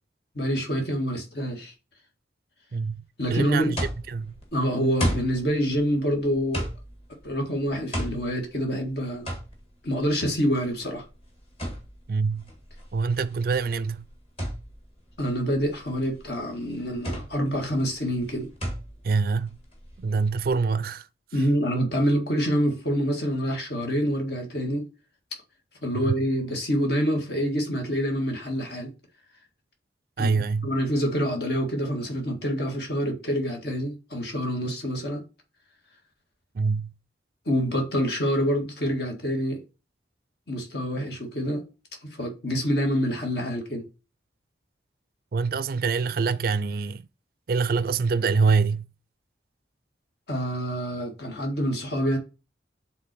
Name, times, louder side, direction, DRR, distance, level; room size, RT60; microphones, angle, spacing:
voice 1, 0.4-1.7 3.2-3.7 4.5-6.7 7.2-9.3 9.8-11.0 15.2-18.5 21.3-24.9 25.8-28.9 30.2-35.2 37.5-39.6 40.5-41.6 42.2-43.9 50.3-52.2, equal, 60° left, 1.8 m, -26 dB
voice 2, 2.7-3.0 3.3-3.8 4.1-4.4 12.1-12.5 12.9-14.1 19.0-19.5 20.0-21.1 25.9-26.2 30.2-30.7 36.5-36.9 45.3-47.0 47.5-48.9, right 4 dB, 50° right, 0.4 m, -25 dB
sound 1, 3.8-20.5, equal, 30° left, 1.8 m, -35 dB
5.8 x 3.7 x 6.0 m
head